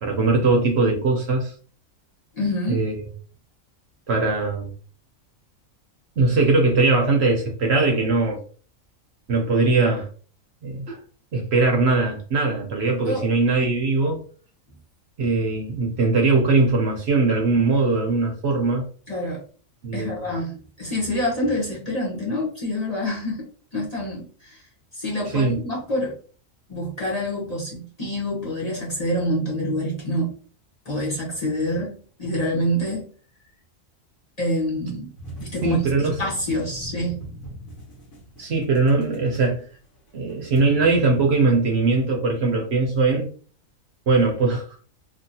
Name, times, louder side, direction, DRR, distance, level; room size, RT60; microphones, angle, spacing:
voice 1, 0.0-1.5 2.7-2.9 4.1-4.7 6.2-8.4 9.3-10.1 10.6-11.0 11.3-14.2 15.2-18.9 19.8-20.3 25.3-25.6 35.6-36.2 38.4-39.7 40.1-43.3 44.1-44.6, right 3 dB, 60° right, 0.9 m, -20 dB
voice 2, 2.4-2.8 13.0-13.2 19.1-19.4 19.9-24.6 24.9-26.1 26.7-30.3 30.8-33.1 34.4-35.1 35.4-37.2, equal, 30° left, 1.1 m, -26 dB
sound 1, 35.2-42.0, right 1 dB, 90° left, 1.5 m, -40 dB
2.9 x 2.7 x 2.7 m
omnidirectional pair, 1.4 m